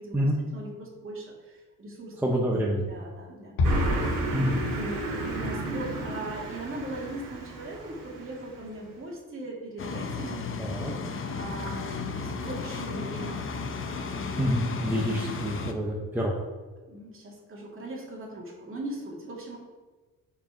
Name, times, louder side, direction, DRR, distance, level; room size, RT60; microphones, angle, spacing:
voice 1, 0.0-3.5 4.7-10.5 11.3-13.5 13.9-14.3 15.9-16.1 16.9-19.6, right 1 dB, 35° right, -3 dB, 2.2 m, -39 dB
voice 2, 2.2-2.8 4.3-4.6 10.6-10.9 14.4-16.3, equal, 5° right, -2 dB, 0.8 m, -27 dB
Bass drum, 3.6-5.0, left 2 dB, 75° left, 1.3 m, -28 dB
Car passing by, 3.6-8.6, right 2 dB, 65° right, 2.2 m, -33 dB
sound 1, 9.8-15.7, left 4 dB, 35° left, 0.7 m, -34 dB
5.9 x 4.8 x 5.1 m, 1.3 s
cardioid pair, 115°, 36 cm